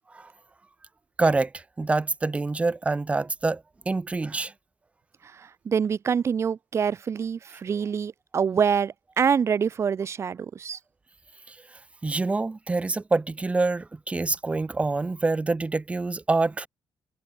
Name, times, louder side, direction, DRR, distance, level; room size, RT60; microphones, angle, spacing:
voice 1, 1.2-4.5 7.7-7.8 11.5-11.6 12.0-16.7, right 3 dB, 15° right, 5.9 m, -26 dB
voice 2, 5.7-10.8, right 7 dB, 40° right, 7.4 m, -25 dB
cardioid pair, 170°, 7 cm